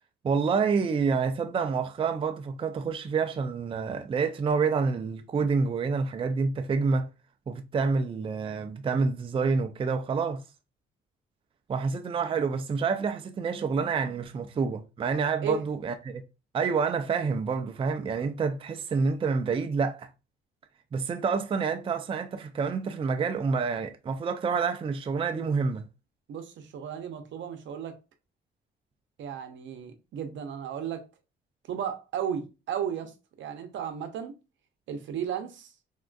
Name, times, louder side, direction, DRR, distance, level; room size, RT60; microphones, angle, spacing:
voice 1, 0.2-7.1 7.5-10.4 11.7-16.2 16.5-20.1 20.9-25.8, right 5 dB, 25° right, 0.4 m, -28 dB
voice 2, 26.3-27.9 29.2-31.1 31.7-34.4 34.9-35.7, right 7 dB, 70° right, 0.7 m, -34 dB
3.5 x 2.4 x 2.2 m
cardioid pair, 90°, 20 cm